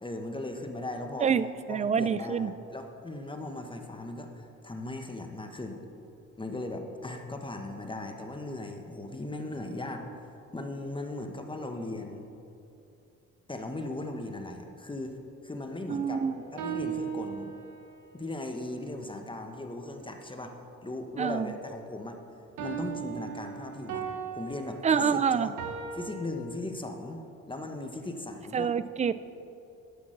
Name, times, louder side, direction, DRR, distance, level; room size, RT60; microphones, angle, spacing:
voice 1, 0.0-1.3 1.7-5.8 6.4-10.1 10.5-12.3 13.5-15.2 15.4-16.2 16.5-17.5 18.1-20.5 20.8-22.2 22.6-24.1 24.3-25.5 25.9-27.2 27.5-28.7, left 2 dB, 15° left, 4 dB, 1.0 m, -38 dB
voice 2, 1.2-2.5 15.9-16.4 21.2-21.5 24.8-25.5 28.5-29.1, right 7 dB, 25° right, 15 dB, 0.3 m, -27 dB
sound 1, 16.1-18.0 22.6-26.1, right 8 dB, 85° right, 1.2 m, -37 dB
11.5 x 5.9 x 6.5 m, 2.7 s
cardioid pair, 90°, 30 cm